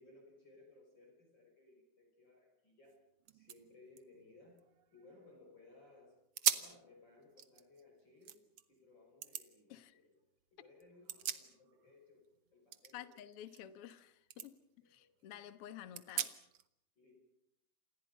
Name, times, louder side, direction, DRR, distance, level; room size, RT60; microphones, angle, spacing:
voice 1, 0.0-3.0 3.3-6.2 6.4-8.4 8.7-10.1 10.5-13.3 14.8-15.4 17.0-17.2, left 2 dB, 30° left, 2 dB, 6.2 m, -62 dB
sound 1, 2.9-3.0 3.2-5.4 5.8-6.0 6.3-6.8 7.2-8.6 9.2-9.5 10.8-11.9 12.2-14.0 14.3-14.5 15.0-15.1 15.9-16.7, right 9 dB, 65° right, 1.4 m, -40 dB
voice 2, 12.9-14.6 14.8-16.3, left 11 dB, 75° left, 12 dB, 1.3 m, -51 dB
29.5 x 28.0 x 5.5 m, 0.77 s
omnidirectional pair, 4.4 m